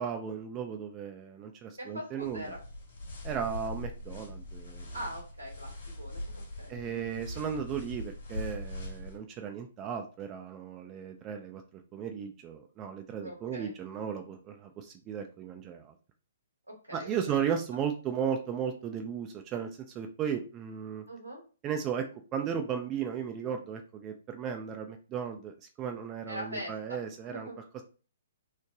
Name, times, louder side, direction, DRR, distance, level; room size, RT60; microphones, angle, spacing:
voice 1, 0.0-2.5 3.2-4.9 6.7-15.9 16.9-19.7 19.9-21.0 21.6-22.0 22.3-27.5, right 8 dB, 25° right, 6 dB, 0.4 m, -35 dB
voice 2, 1.8-2.6 4.9-7.0 13.2-13.7 16.7-17.4 21.1-21.4 26.3-27.5, equal, 90° right, -1 dB, 1.4 m, -42 dB
sound 1, 2.2-9.2, left 1 dB, 60° left, 1.4 m, -41 dB
3.2 x 2.1 x 3.7 m, 0.36 s
figure-of-eight pair, 125°, 0 cm